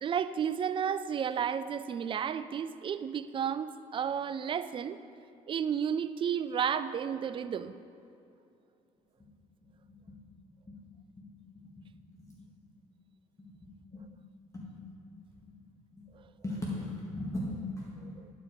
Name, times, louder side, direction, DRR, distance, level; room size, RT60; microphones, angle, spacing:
voice 1, 0.0-5.0 5.5-7.7 18.0-18.3, right 8 dB, 35° right, 14 dB, 0.3 m, -32 dB
voice 2, 12.1-12.4 13.4-13.5 14.5-14.6 15.9-16.0 16.4-18.2, left 1 dB, 20° left, -5 dB, 1.7 m, -37 dB
11.0 x 4.8 x 4.9 m, 2.6 s
cardioid pair, 90°, 15 cm